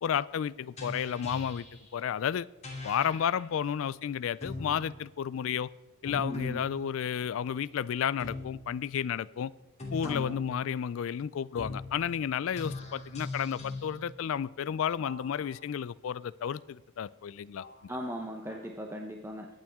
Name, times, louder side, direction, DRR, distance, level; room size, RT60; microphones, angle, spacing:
voice 1, 0.0-1.7 1.9-2.5 2.8-5.7 6.0-9.5 9.9-17.9, left 8 dB, 65° left, 18 dB, 0.3 m, -32 dB
sound 1, 0.8-1.9 2.6-3.4 4.4-4.8 6.1-6.7 8.2-8.6 9.8-10.6 11.6-11.9 12.6-13.9 15.0-15.7 16.5-16.6 17.6-17.8 18.5-18.6, left 3 dB, 30° left, 2.8 m, -40 dB
voice 2, 6.2-6.6 10.0-10.4 17.9-19.5, equal, 10° right, 2 dB, 0.8 m, -38 dB
22.5 x 8.9 x 3.6 m, 1.1 s
head